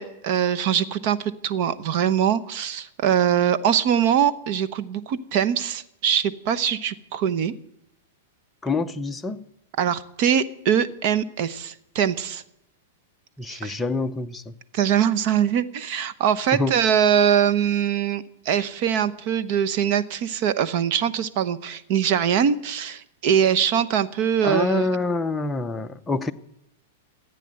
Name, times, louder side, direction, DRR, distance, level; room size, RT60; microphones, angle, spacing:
voice 1, 0.0-7.5 9.8-12.4 13.5-13.8 14.7-24.9, right 8 dB, 45° right, 12 dB, 0.9 m, -22 dB
voice 2, 8.6-9.4 13.4-14.5 16.5-16.8 24.4-26.3, left 3 dB, 10° left, 6 dB, 0.7 m, -26 dB
15.0 x 9.2 x 7.7 m, 0.81 s
hypercardioid pair, 145°, 0 cm